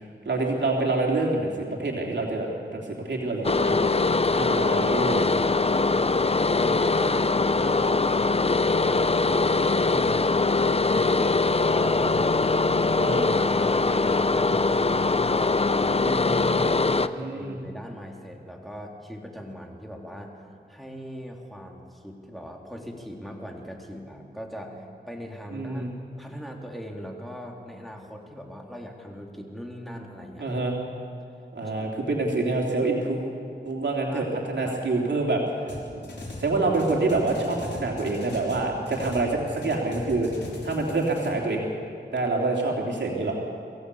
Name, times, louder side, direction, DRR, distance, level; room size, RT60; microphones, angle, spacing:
voice 1, 0.2-3.9 4.3-5.4 9.8-10.1 13.0-13.4 15.9-16.6 17.1-17.6 25.5-25.9 30.4-30.7 31.5-33.2 33.6-35.4 36.4-40.3 40.6-41.7 42.1-43.4, right 2 dB, 75° right, -1 dB, 3.1 m, -27 dB
sound 1, 3.4-17.1, left 3 dB, 35° left, 0.7 m, -22 dB
voice 2, 6.1-10.3 10.8-12.4 13.6-20.4 20.7-25.9 26.2-30.6 31.8-31.9 34.1-34.3 34.6-34.7, equal, ahead, 0 dB, 3.6 m, -40 dB
sound 2, 35.7-36.5 36.7-39.3 39.6-41.3, left 2 dB, 70° left, 5.2 m, -39 dB
23.0 x 16.0 x 8.3 m, 2.4 s
cardioid pair, 45°, 19 cm